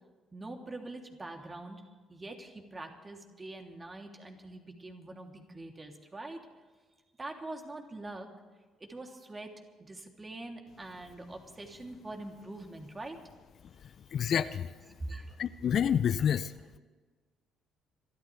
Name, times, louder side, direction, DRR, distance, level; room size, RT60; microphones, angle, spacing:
voice 1, 0.3-1.8 2.1-6.4 7.2-8.3 8.8-9.5 9.8-13.2 15.1-15.4, right 2 dB, 25° right, 2 dB, 3.1 m, -44 dB
voice 2, 14.1-14.7 15.4-16.5, left 8 dB, 55° left, 14 dB, 0.6 m, -28 dB
26.5 x 13.5 x 3.5 m, 1.4 s
hypercardioid pair, 50°, 0 cm